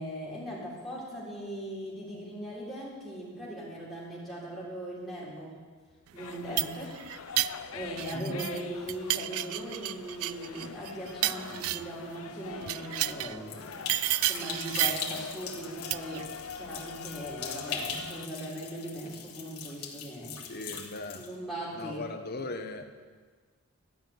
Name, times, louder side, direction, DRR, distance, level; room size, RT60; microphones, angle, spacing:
voice 1, 0.0-5.5 6.1-6.9 7.7-13.9 14.2-16.2 16.5-20.3 21.2-22.0, right 1 dB, ahead, -8 dB, 3.6 m, -39 dB
sound 1, 6.2-18.3, left 6 dB, 65° left, 0.5 m, -44 dB
sound 2, 6.2-8.6 8.9-12.0 12.6-13.4 13.9-15.1 15.9-16.2, right 16 dB, 75° right, 0.3 m, -31 dB
voice 2, 8.1-8.5 20.5-21.3 21.7-22.9, left 2 dB, 45° left, 6 dB, 0.9 m, -38 dB
sound 3, 13.5-21.3, left 6 dB, 85° left, 1.6 m, -41 dB
13.0 x 5.7 x 9.2 m, 1.5 s
head